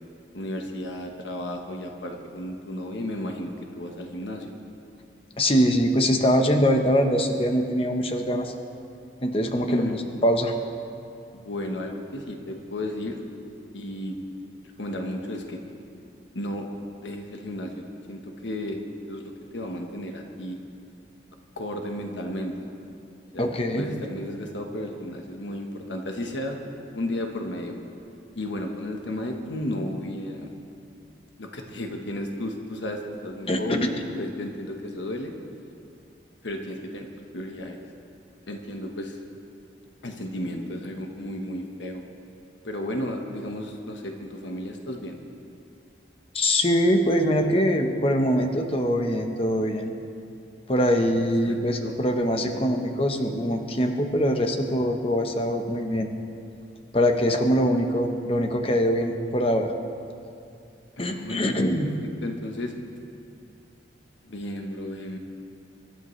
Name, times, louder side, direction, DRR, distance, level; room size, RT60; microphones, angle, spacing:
voice 1, 0.3-4.5 9.6-10.0 11.3-13.2 13.7-14.2 14.8-15.6 16.3-16.7 17.0-18.8 19.1-20.6 21.6-22.5 23.3-26.6 26.9-27.8 28.3-30.5 31.4-35.3 36.4-37.1 37.3-37.8 38.5-39.2 40.0-42.0 42.6-45.2 51.4-52.0 52.4-52.7 61.0-61.7 62.0-62.7 64.2-65.2, left 1 dB, 85° left, 3 dB, 1.2 m, -33 dB
voice 2, 5.4-8.5 9.2-10.5 23.4-23.9 33.5-33.9 46.3-49.9 50.7-56.1 56.9-59.7 61.0-61.9, equal, 30° left, 5 dB, 1.0 m, -23 dB
25.5 x 12.0 x 3.2 m, 2.5 s
head